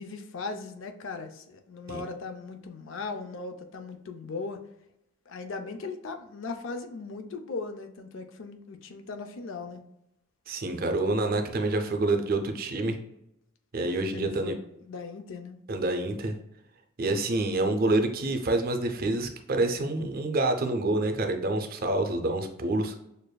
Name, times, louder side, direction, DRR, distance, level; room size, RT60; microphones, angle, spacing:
voice 1, 0.0-4.6 5.3-9.8 14.1-15.6, left 4 dB, 60° left, 6 dB, 0.5 m, -38 dB
voice 2, 10.5-13.0 13.7-14.5 15.7-16.4 17.0-22.9, right 2 dB, 45° right, 5 dB, 0.5 m, -27 dB
6.5 x 2.5 x 2.2 m, 0.81 s
head